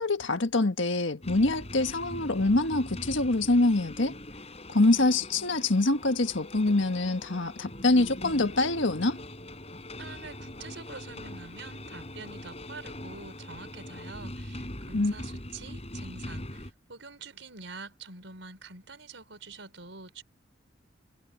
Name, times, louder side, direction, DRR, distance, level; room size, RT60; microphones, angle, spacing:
voice 1, 0.0-4.1 4.7-9.2 14.9-15.1, left 2 dB, 80° left, 1.6 m, -25 dB
sound 1, 1.2-16.7, left 1 dB, 35° left, 7.2 m, -42 dB
voice 2, 10.0-20.2, right 4 dB, 75° right, 5.0 m, -46 dB
head